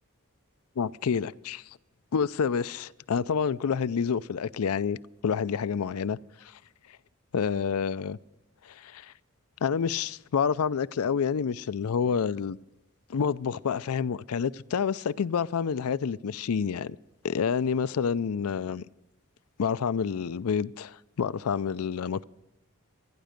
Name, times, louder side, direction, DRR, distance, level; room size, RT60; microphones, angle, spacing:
voice 1, 0.8-1.6 2.1-5.0 5.2-6.2 6.4-6.6 7.3-8.2 8.6-9.1 9.6-12.6 13.1-17.0 17.2-18.8 19.6-22.2, left 6 dB, 85° left, 0.4 m, -28 dB
27.5 x 10.5 x 5.1 m
head